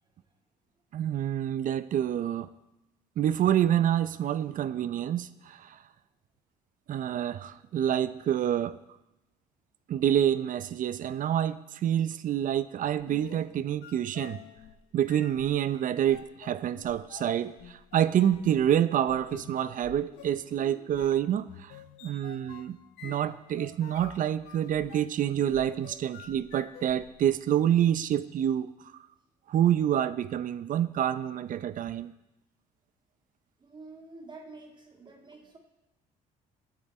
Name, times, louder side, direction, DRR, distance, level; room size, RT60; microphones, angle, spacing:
voice 1, 0.9-2.5 3.2-5.8 6.9-8.8 9.9-14.4 14.9-21.7 22.0-22.8 23.0-28.7 29.5-32.1, right 10 dB, 50° right, 15 dB, 0.6 m, -27 dB
sound 1, 13.0-27.3, left 9 dB, 90° left, 0.9 m, -49 dB
voice 2, 33.6-35.6, right 3 dB, 25° right, 2 dB, 2.1 m, -48 dB
17.5 x 8.9 x 4.2 m, 0.94 s
cardioid pair, 110°, 17 cm